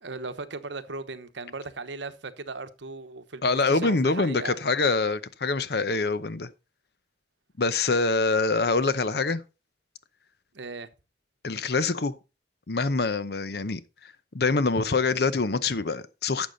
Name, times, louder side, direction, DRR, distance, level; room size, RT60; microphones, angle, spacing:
voice 1, 0.0-4.6 10.5-10.9, right 3 dB, 75° right, 1.0 m, -37 dB
voice 2, 3.4-6.5 7.6-9.4 11.4-12.1 12.7-13.8 14.3-16.5, left 3 dB, 55° left, 0.7 m, -25 dB
11.5 x 7.3 x 4.0 m
head